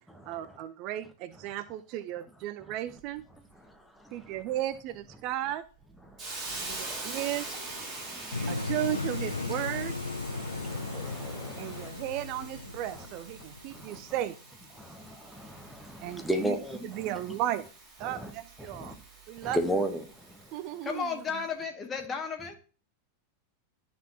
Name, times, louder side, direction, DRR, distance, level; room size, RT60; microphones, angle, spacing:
voice 1, 0.2-3.2 4.1-5.6 6.6-7.6 8.5-9.9 11.6-14.4 16.0-16.6 16.8-17.7 18.0-19.0 19.3-19.6 20.5-21.1, right 13 dB, 40° right, 0.4 m, -35 dB
voice 2, 4.0-4.3 6.1-6.2 6.7-7.0 8.0-8.5 10.3-11.9 13.0-13.1 13.7-14.0 14.8-17.1 18.0-18.3 18.8-18.9 19.4-20.4, equal, ahead, 1.0 m, -35 dB
Hiss, 6.2-21.0, right 3 dB, 25° right, 3.3 m, -44 dB
sound 1, 8.3-14.2, left 3 dB, 80° left, 0.6 m, -36 dB
voice 3, 20.8-22.6, left 5 dB, 20° left, 1.5 m, -34 dB
12.5 x 4.2 x 2.9 m
figure-of-eight pair, 90°, 0 cm